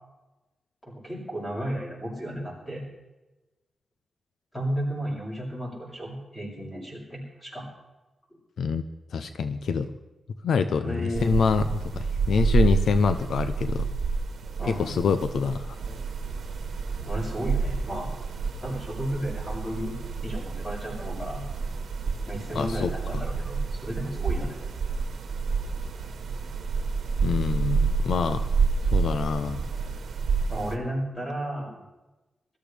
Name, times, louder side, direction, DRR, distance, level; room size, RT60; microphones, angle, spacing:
voice 1, 0.8-2.8 4.5-7.7 10.8-11.4 14.6-14.9 17.0-18.1 18.6-21.4 22.3-24.6 30.5-31.8, equal, 20° left, -4 dB, 6.6 m, -33 dB
voice 2, 9.1-9.9 10.4-13.9 14.8-15.8 22.5-23.2 27.2-28.4 28.9-29.6, left 5 dB, 85° left, 10 dB, 0.6 m, -26 dB
sound 1, 11.1-30.8, right 4 dB, 75° right, 1.4 m, -29 dB
23.0 x 14.0 x 3.4 m, 1.1 s
wide cardioid pair, 170°, 0 cm